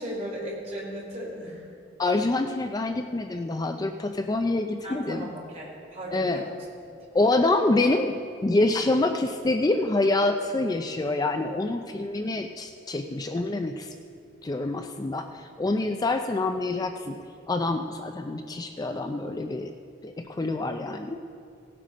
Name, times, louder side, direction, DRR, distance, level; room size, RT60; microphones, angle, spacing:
voice 1, 0.0-1.7 4.8-6.6, equal, 35° right, -4 dB, 3.6 m, -36 dB
voice 2, 2.0-5.3 6.1-6.4 7.1-13.9 14.4-19.7 20.0-21.2, left 2 dB, 20° left, 6 dB, 0.4 m, -26 dB
17.0 x 7.7 x 5.0 m, 2.5 s
head